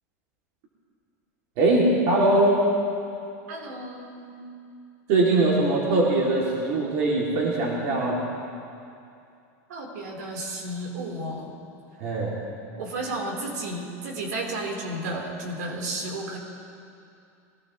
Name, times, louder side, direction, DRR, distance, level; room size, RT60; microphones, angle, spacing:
voice 1, 1.6-2.6 5.1-8.2 12.0-12.4, right 2 dB, 45° right, -4 dB, 2.6 m, -21 dB
voice 2, 3.5-4.5 9.7-11.5 12.8-16.4, right 2 dB, 85° right, -1 dB, 3.8 m, -33 dB
24.0 x 15.5 x 3.1 m, 2.5 s
supercardioid pair, 175°, 9 cm